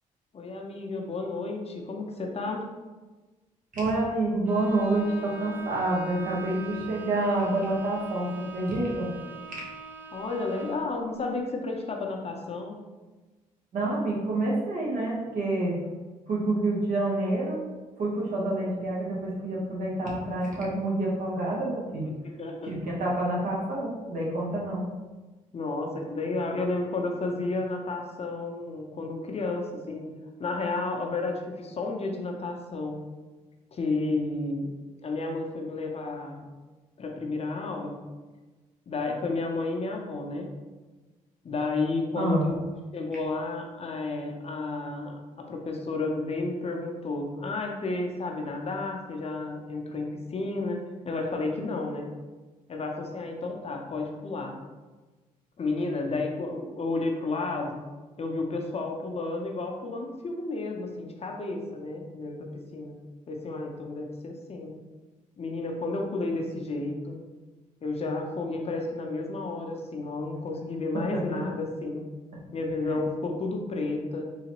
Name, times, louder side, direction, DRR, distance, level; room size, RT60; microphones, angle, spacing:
voice 1, 0.3-2.6 10.1-12.8 22.2-22.7 25.5-30.0 30.4-33.0 33.7-34.7 35.0-36.4 37.0-37.9 38.9-40.5 41.4-52.1 52.7-54.6 55.6-57.8 58.2-63.0 63.3-64.7 65.4-67.2 67.8-72.0 72.5-74.3, left 3 dB, 45° left, 2 dB, 0.7 m, -32 dB
voice 2, 3.7-9.1 9.5-9.6 13.7-15.8 16.3-17.6 18.0-22.1 22.7-24.9 42.2-42.5 72.9-73.0, right 2 dB, 65° right, -4 dB, 1.3 m, -28 dB
Bowed string instrument, 4.4-11.0, right 2 dB, 10° right, 0.6 m, -42 dB
3.9 x 2.8 x 3.0 m, 1.2 s
supercardioid pair, 60°, 15 cm